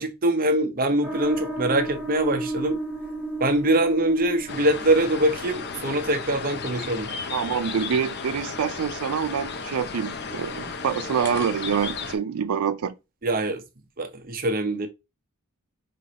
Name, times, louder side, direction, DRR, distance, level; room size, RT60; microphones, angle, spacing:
voice 1, 0.0-2.8 3.4-7.1 13.2-13.6 14.0-14.9, right 1 dB, 40° right, 0.8 m, -23 dB
sound 1, 1.0-12.2, right 2 dB, 10° right, 1.3 m, -36 dB
sound 2, 4.5-12.2, left 5 dB, 50° left, 0.6 m, -34 dB
voice 2, 7.3-13.0, right 7 dB, 80° right, 0.4 m, -26 dB
5.2 x 3.0 x 2.8 m
head